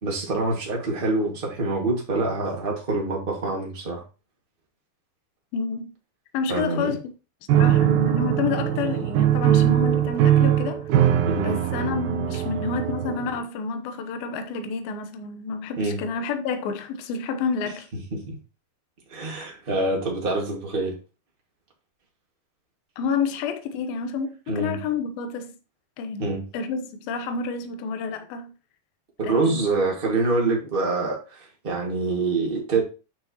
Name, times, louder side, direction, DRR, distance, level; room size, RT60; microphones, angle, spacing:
voice 1, 0.0-4.0 6.5-7.0 11.2-11.6 15.8-16.0 18.1-18.4 19.1-20.9 24.5-24.8 26.2-26.4 29.2-32.8, right 3 dB, 30° right, 1.0 m, -26 dB
voice 2, 5.5-5.9 6.3-7.1 7.5-17.9 19.2-19.5 23.0-25.5 26.0-28.5 29.2-29.7, left 5 dB, 75° left, 2.7 m, -29 dB
Piano, 7.5-13.4, right 11 dB, 80° right, 2.4 m, -21 dB
8.6 x 6.1 x 3.0 m
omnidirectional pair, 4.4 m